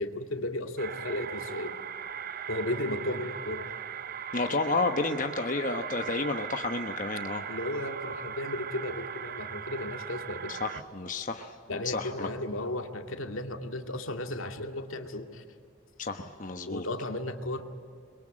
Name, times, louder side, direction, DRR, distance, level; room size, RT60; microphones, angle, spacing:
voice 1, 0.0-1.8 2.5-3.7 7.5-10.6 11.7-15.4 16.7-17.7, left 1 dB, 80° left, 5 dB, 2.1 m, -34 dB
sound 1, 0.8-10.8, right 8 dB, 45° right, 0.6 m, -39 dB
voice 2, 4.3-7.5 10.5-12.3 16.0-16.8, left 3 dB, 40° left, 5 dB, 1.1 m, -31 dB
29.0 x 22.0 x 8.9 m, 2.4 s
head